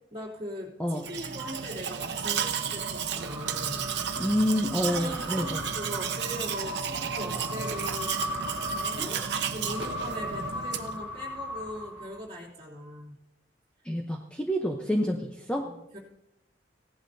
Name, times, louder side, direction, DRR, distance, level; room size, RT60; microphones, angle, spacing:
voice 1, 0.1-3.9 4.8-8.2 8.7-13.1 15.5-16.0, equal, 30° right, -3 dB, 3.0 m, -40 dB
Domestic sounds home sounds, 0.9-11.0, right 7 dB, 70° right, 0.8 m, -33 dB
sound 1, 2.7-12.4, equal, 10° right, 3.1 m, -38 dB
voice 2, 4.2-5.7 9.0-9.3 13.8-15.6, equal, 5° left, 1 dB, 0.8 m, -28 dB
16.5 x 11.0 x 2.7 m, 0.86 s
head